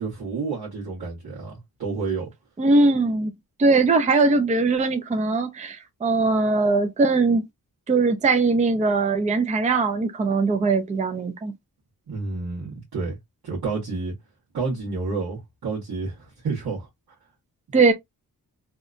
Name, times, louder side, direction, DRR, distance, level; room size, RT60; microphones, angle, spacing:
voice 1, 0.0-2.3 12.1-13.2 13.4-14.1 14.5-16.9, right 4 dB, 75° right, 1.2 m, -30 dB
voice 2, 2.6-3.3 3.6-7.4 7.9-11.5 17.7-17.9, right 3 dB, 20° right, 0.4 m, -20 dB
2.8 x 2.2 x 2.4 m
wide cardioid pair, 150°, 37 cm